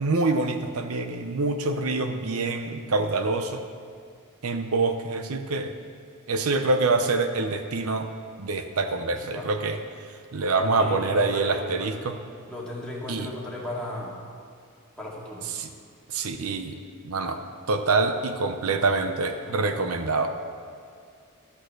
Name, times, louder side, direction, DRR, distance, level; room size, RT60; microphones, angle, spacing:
voice 1, 0.0-3.6 4.4-5.7 6.3-8.1 8.4-9.8 10.3-12.2 13.1-13.3 15.5-15.7 16.1-16.8 17.0-17.4 17.7-20.3, right 3 dB, 80° right, 7 dB, 0.7 m, -25 dB
voice 2, 9.1-9.5 10.8-11.9 12.5-14.2 15.0-15.5 19.4-19.7, left 1 dB, 5° left, -5 dB, 2.1 m, -36 dB
13.0 x 6.5 x 6.4 m, 2.3 s
head